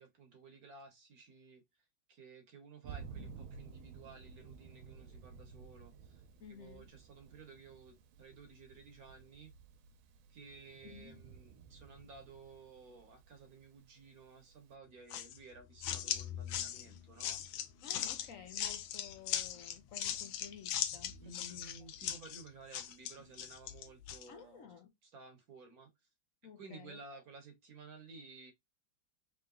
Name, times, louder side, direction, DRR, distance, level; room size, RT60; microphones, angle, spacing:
voice 1, 0.0-1.6 2.1-6.2 6.5-9.5 10.3-17.7 21.2-24.7 25.0-25.9 26.6-28.5, right 4 dB, 55° right, 1.2 m, -55 dB
Thunder, 2.8-14.7, right 6 dB, 90° right, 1.5 m, -54 dB
voice 2, 6.4-6.9 10.8-11.2 17.8-21.2 21.5-21.6 24.3-24.9 26.4-27.2, left 7 dB, 65° left, 0.8 m, -53 dB
sound 1, 15.1-24.3, left 10 dB, 85° left, 1.4 m, -39 dB
3.8 x 3.1 x 3.6 m
omnidirectional pair, 2.1 m